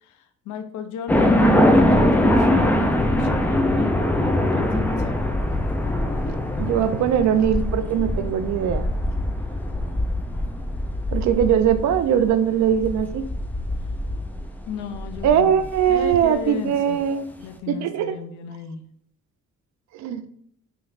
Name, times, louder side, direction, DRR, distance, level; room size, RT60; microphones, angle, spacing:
voice 1, 0.0-5.1 14.7-17.0 17.4-18.8, left 7 dB, 75° left, 8 dB, 0.5 m, -34 dB
sound 1, 1.1-16.2, left 1 dB, 5° left, 0.3 m, -22 dB
voice 2, 6.2-8.9 11.1-13.2 15.2-17.3 17.7-18.1 19.9-20.3, right 9 dB, 65° right, 10 dB, 0.5 m, -21 dB
3.2 x 3.1 x 2.4 m, 0.65 s
cardioid pair, 90°, 30 cm